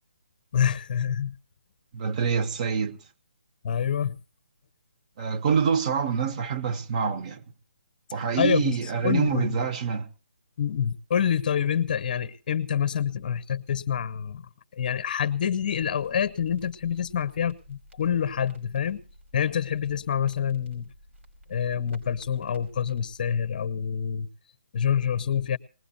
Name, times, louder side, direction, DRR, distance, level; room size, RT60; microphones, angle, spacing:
voice 1, 0.5-1.3 3.6-4.1 8.4-8.8 9.0-9.6 10.6-14.5 14.7-19.0 19.3-20.9 21.5-24.3 24.7-25.6, left 8 dB, 45° left, 0.8 m, -27 dB
voice 2, 1.9-3.0 5.2-7.4 8.1-10.1, right 6 dB, 35° right, 1.0 m, -26 dB
Crackle, 15.7-23.6, equal, 90° right, 5.2 m, -54 dB
20.5 x 19.0 x 2.7 m
hypercardioid pair, 155°, 6 cm